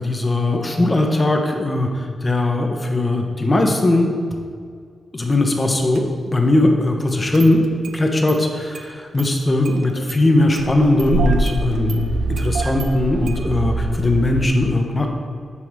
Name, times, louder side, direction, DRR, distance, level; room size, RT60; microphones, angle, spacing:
voice 1, 0.0-4.2 5.1-6.0 6.3-7.6 7.9-15.1, left 2 dB, 30° left, 3 dB, 0.8 m, -19 dB
Engine starting, 5.9-6.0 7.3-8.0 8.3-8.4 8.7-8.9 9.2-9.3 9.6-10.2 10.5-14.5, right 2 dB, 85° right, 0.3 m, -25 dB
7.0 x 2.8 x 4.7 m, 2.1 s
cardioid pair, 55°, 0 cm